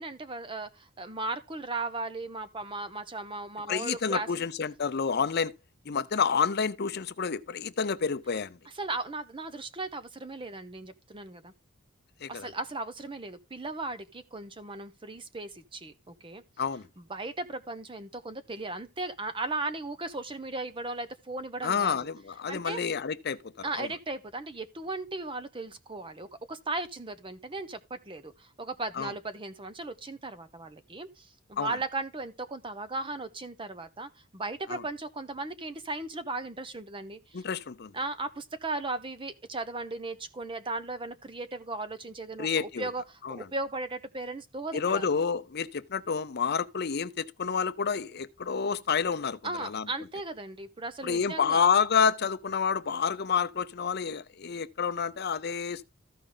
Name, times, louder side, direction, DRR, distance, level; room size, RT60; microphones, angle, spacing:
voice 1, 0.0-4.4 8.7-11.5 12.3-16.4 17.0-21.9 22.5-22.8 23.6-37.4 37.9-45.0 49.4-51.6, right 2 dB, 25° right, 0.8 m, -37 dB
voice 2, 3.7-5.5 5.9-8.6 12.2-12.5 16.6-16.9 21.6-23.9 28.9-29.1 31.6-31.8 34.7-34.8 37.3-37.9 42.4-42.9 43.2-43.5 44.7-49.9 51.0-55.8, left 6 dB, 50° left, 0.6 m, -29 dB
14.5 x 4.9 x 3.9 m
head